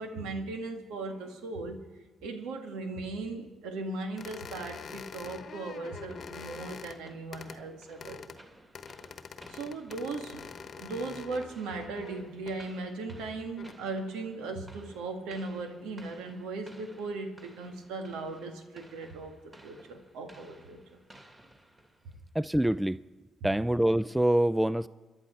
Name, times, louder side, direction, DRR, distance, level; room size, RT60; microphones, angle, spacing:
voice 1, 0.0-1.8 2.2-8.3 9.5-10.5 10.8-19.3 19.6-21.0 22.0-22.1, right 3 dB, 80° right, 5 dB, 1.9 m, -38 dB
sound 1, 4.2-7.0 7.3-7.6 8.0-8.4 8.7-12.6 13.4-13.7, left 6 dB, 55° left, 1.1 m, -45 dB
sound 2, 5.5-22.2, right 1 dB, 25° right, 2.6 m, -56 dB
voice 2, 22.3-23.0 23.4-24.9, right 1 dB, 10° right, 17 dB, 0.4 m, -25 dB
28.0 x 11.0 x 4.4 m, 1.3 s
hypercardioid pair, 50°, 0 cm